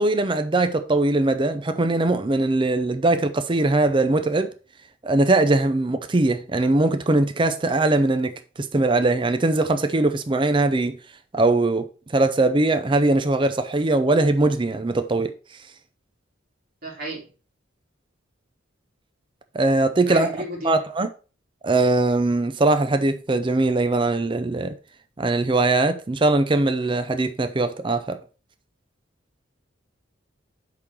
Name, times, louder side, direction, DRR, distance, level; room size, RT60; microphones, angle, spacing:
voice 1, 0.0-4.5 5.0-11.0 11.3-11.8 12.1-15.3 19.5-21.1 21.6-24.7 25.2-28.2, right 2 dB, 25° right, 0.5 m, -21 dB
voice 2, 16.8-17.3 20.1-20.8, right 1 dB, 50° right, 3.0 m, -32 dB
8.4 x 3.8 x 4.5 m
head